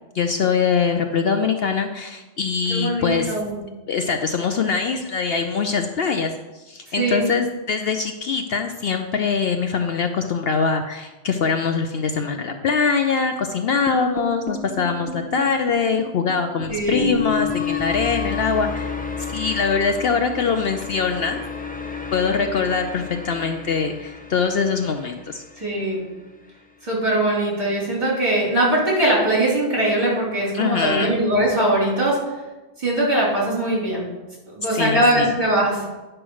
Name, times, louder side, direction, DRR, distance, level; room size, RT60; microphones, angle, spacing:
voice 1, 0.1-3.4 3.9-19.0 19.3-21.4 22.1-25.4 30.5-31.2 34.7-35.3, left 5 dB, 60° left, 6 dB, 0.8 m, -23 dB
voice 2, 2.7-3.6 6.9-7.3 16.7-17.0 25.6-26.0 26.8-32.2 32.8-34.1 34.5-35.9, right 1 dB, 40° right, -6 dB, 3.8 m, -21 dB
sound 1, 13.9-26.1, left 5 dB, 10° left, 0.5 m, -31 dB
9.9 x 4.7 x 6.3 m, 1.1 s
omnidirectional pair, 1.2 m